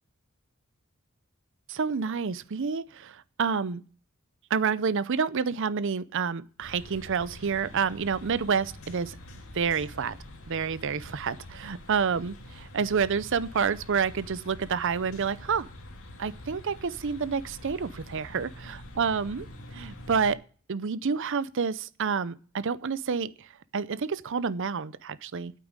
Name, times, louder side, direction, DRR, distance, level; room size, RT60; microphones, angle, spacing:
voice 1, 1.7-3.8 4.5-9.2 9.5-10.2 10.5-15.7 16.2-19.5 19.7-20.4 20.7-23.5 23.7-25.5, right 6 dB, 60° right, 0.6 m, -29 dB
sound 1, 6.6-20.3, left 1 dB, 75° left, 2.2 m, -46 dB
9.0 x 8.5 x 8.8 m
head